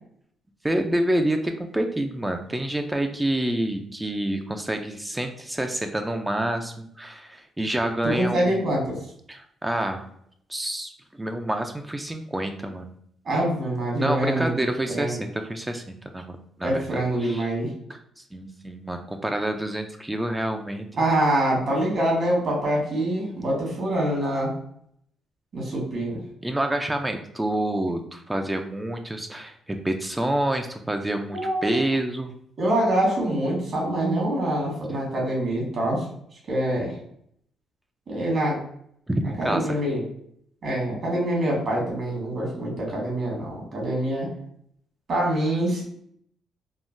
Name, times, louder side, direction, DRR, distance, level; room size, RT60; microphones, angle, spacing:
voice 1, 0.6-8.6 9.3-10.1 10.5-10.9 11.2-12.9 14.0-17.5 17.9-18.0 18.3-20.9 26.4-32.3 39.1-39.8, right 1 dB, 10° right, 5 dB, 0.3 m, -28 dB
voice 2, 8.0-9.0 13.2-14.5 14.9-15.2 16.6-17.7 20.9-24.5 25.5-26.2 31.3-31.8 32.6-36.1 36.5-37.0 38.1-38.6 39.4-40.0 40.6-44.3 45.1-45.8, right 1 dB, 55° right, -3 dB, 1.4 m, -25 dB
3.6 x 2.1 x 2.5 m, 0.68 s
cardioid pair, 90°, 0 cm